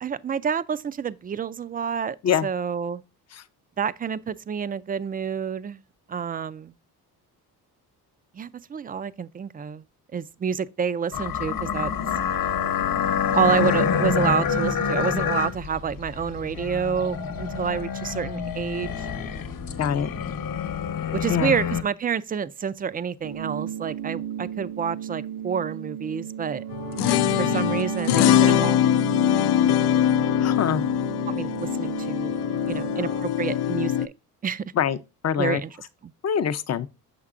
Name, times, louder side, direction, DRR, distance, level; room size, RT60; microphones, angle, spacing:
voice 1, 0.0-2.2 2.4-3.0 3.8-5.8 6.1-6.7 8.3-9.8 10.1-11.9 13.3-19.1 21.1-26.6 27.4-28.8 31.3-32.3 32.7-34.1 34.4-34.6 35.4-35.8 36.0-36.1, right 7 dB, 25° right, 0.3 m, -28 dB
sound 1, 11.1-21.8, left 7 dB, 60° left, 1.0 m, -27 dB
voice 2, 19.8-20.1 21.3-21.5 30.4-30.8 34.8-35.0 35.2-35.6 36.2-36.9, left 8 dB, 40° left, 0.6 m, -24 dB
sound 2, 23.2-33.2, right 9 dB, 65° right, 0.7 m, -34 dB
sound 3, 26.7-34.1, left 11 dB, 80° left, 0.5 m, -22 dB
6.5 x 6.0 x 2.4 m
cardioid pair, 90°, 39 cm